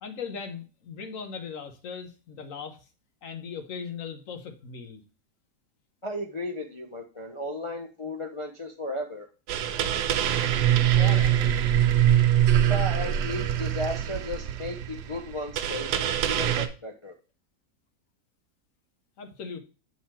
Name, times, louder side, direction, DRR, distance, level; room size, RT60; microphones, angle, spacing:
voice 1, 0.0-2.9 3.2-5.0 10.9-11.6 19.2-19.6, left 5 dB, 55° left, 7 dB, 1.2 m, -38 dB
voice 2, 6.0-9.3 12.6-17.1, left 1 dB, 40° left, 1 dB, 0.4 m, -35 dB
sound 1, 9.5-16.7, right 11 dB, 85° right, 1.3 m, -24 dB
7.4 x 4.0 x 4.2 m, 0.32 s
omnidirectional pair, 1.7 m